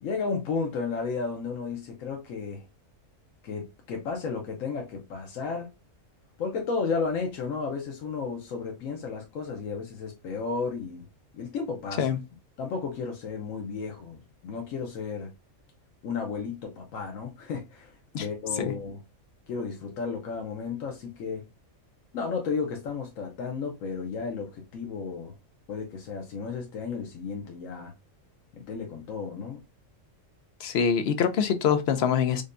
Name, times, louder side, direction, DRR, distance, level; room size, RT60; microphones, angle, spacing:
voice 1, 0.0-2.6 3.4-5.7 6.4-11.0 11.3-12.2 12.6-15.3 16.0-17.9 18.2-19.0 19.5-21.4 22.1-25.3 25.7-27.9 28.5-29.6, left 5 dB, 85° left, 1.1 m, -33 dB
voice 2, 30.6-32.4, left 7 dB, 65° left, 0.7 m, -24 dB
5.0 x 2.2 x 2.5 m
omnidirectional pair, 1.4 m